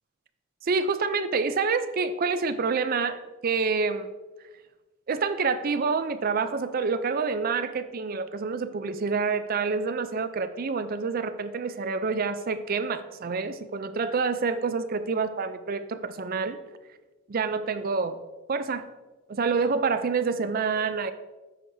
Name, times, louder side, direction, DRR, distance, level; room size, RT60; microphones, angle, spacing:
voice 1, 0.6-4.1 5.1-16.6 17.3-18.2 18.5-18.9 19.3-21.1, right 4 dB, 45° right, 11 dB, 0.5 m, -27 dB
9.9 x 6.5 x 2.7 m, 1.2 s
head